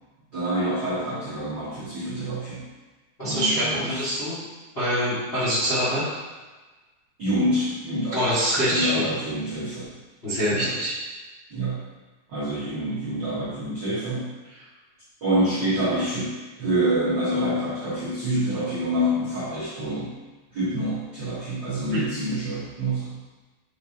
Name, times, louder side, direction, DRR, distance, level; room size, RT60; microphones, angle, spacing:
voice 1, 0.3-2.7 3.2-4.1 7.2-9.9 10.5-10.7 11.5-11.8 12.3-14.3 15.2-20.1 20.5-23.2, right 1 dB, 60° right, -11 dB, 1.2 m, -27 dB
voice 2, 3.2-4.4 4.7-6.0 8.1-8.9 10.2-10.9 21.9-22.0, equal, 30° left, -11 dB, 1.1 m, -24 dB
7.4 x 4.8 x 2.8 m, 1.2 s
omnidirectional pair, 4.2 m